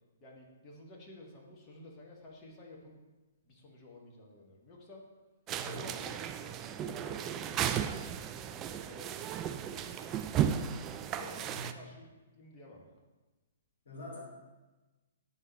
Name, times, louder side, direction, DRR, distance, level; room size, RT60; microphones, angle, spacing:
voice 1, 0.2-3.0 3.4-5.1 5.6-10.5 11.0-12.9, left 1 dB, 25° left, -2 dB, 1.5 m, -53 dB
voice 2, 5.5-6.0 11.4-11.7 13.9-14.2, equal, 65° left, -2 dB, 1.5 m, -45 dB
sound 1, 5.5-11.7, right 9 dB, 25° right, 0.3 m, -35 dB
8.9 x 3.7 x 4.2 m, 1.2 s
figure-of-eight pair, 120°, 0 cm